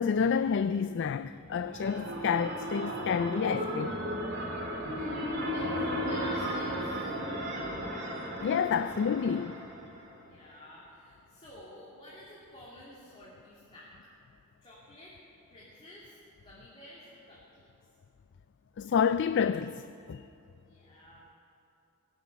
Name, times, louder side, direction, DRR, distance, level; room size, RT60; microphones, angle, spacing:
voice 1, 0.0-4.0 8.4-9.6 18.8-19.8 20.1-20.2, left 6 dB, 55° left, 0.3 m, -29 dB
sound 1, 1.3-10.2, equal, 50° right, 2.5 m, -35 dB
voice 2, 4.9-6.9 10.2-13.9 14.6-15.2 15.5-17.7 20.5-21.3, left 1 dB, 25° left, 2.7 m, -52 dB
19.5 x 8.2 x 9.1 m
head